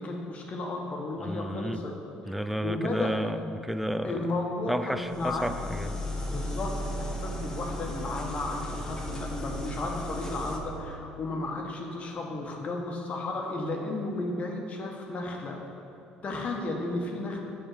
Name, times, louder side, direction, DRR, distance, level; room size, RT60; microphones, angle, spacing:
voice 1, 0.0-1.9 2.2-3.1 4.0-5.5 6.2-15.6 16.2-17.4, left 2 dB, 45° left, 1 dB, 1.1 m, -34 dB
voice 2, 1.2-1.8 2.3-4.3 4.7-6.0, equal, 5° right, 11 dB, 0.3 m, -31 dB
sound 1, 5.0-10.6, left 1 dB, 20° left, 0.9 m, -35 dB
7.8 x 3.6 x 6.4 m, 2.7 s
supercardioid pair, 85°, 3 cm